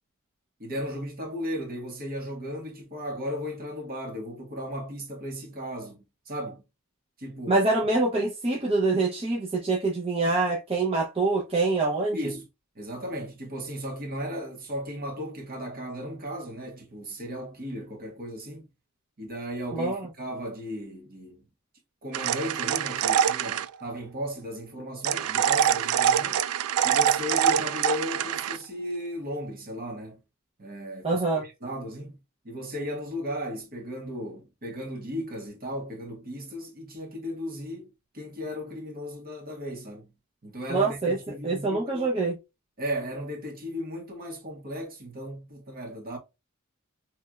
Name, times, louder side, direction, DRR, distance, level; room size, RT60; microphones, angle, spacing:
voice 1, 0.6-6.6 7.2-7.6 12.1-12.5 12.7-18.7 19.2-21.4 22.0-26.4 26.8-30.2 30.6-32.2 32.4-40.1 40.4-42.1 42.8-46.2, equal, 45° right, 1.4 m, -36 dB
voice 2, 7.5-12.2 19.7-20.1 31.0-31.4 40.7-41.2 41.4-42.4, right 3 dB, 25° right, 0.7 m, -25 dB
sound 1, 22.1-23.7 25.0-28.6, right 9 dB, 85° right, 0.3 m, -24 dB
3.4 x 3.1 x 2.2 m
head